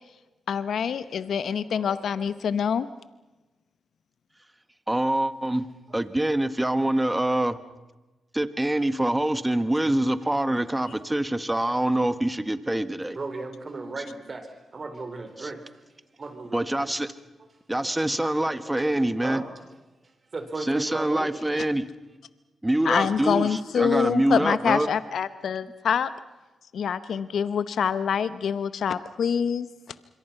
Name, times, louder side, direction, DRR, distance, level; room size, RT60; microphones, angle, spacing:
voice 1, 0.5-2.9 22.8-26.1 26.7-29.7, left 7 dB, 75° left, 14 dB, 0.8 m, -25 dB
voice 2, 1.7-2.3 13.1-15.6 16.2-16.9 17.8-18.1 18.5-19.4 20.3-21.4, right 3 dB, 45° right, 7 dB, 4.4 m, -37 dB
voice 3, 4.9-5.7 5.9-7.6 8.3-13.2 15.4-15.5 16.5-17.1 17.7-19.4 20.7-21.9 22.6-24.9, right 1 dB, 15° right, 12 dB, 1.6 m, -25 dB
27.0 x 23.0 x 5.8 m, 1.1 s
supercardioid pair, 50°, 0 cm